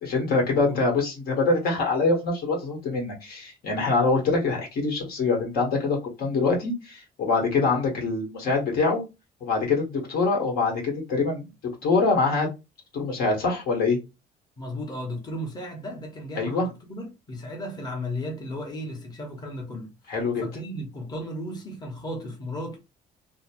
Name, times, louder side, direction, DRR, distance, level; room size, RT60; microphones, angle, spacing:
voice 1, 0.0-9.0 9.4-11.5 11.8-12.5 12.9-14.0 16.4-16.7 20.1-20.4, left 3 dB, 65° left, 1.3 m, -24 dB
voice 2, 14.6-22.8, left 1 dB, 25° left, 1.0 m, -35 dB
2.9 x 2.1 x 2.9 m
cardioid pair, 110°, 17 cm